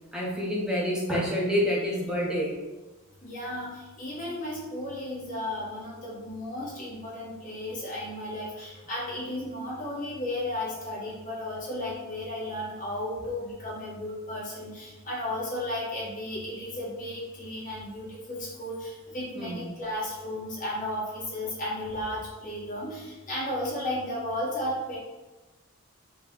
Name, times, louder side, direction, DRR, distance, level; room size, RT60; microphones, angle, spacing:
voice 1, 0.1-2.6 19.4-19.7, equal, 5° right, -4 dB, 0.8 m, -27 dB
voice 2, 3.2-25.0, left 1 dB, 35° left, -7 dB, 1.3 m, -34 dB
4.6 x 2.3 x 3.6 m, 1.1 s
head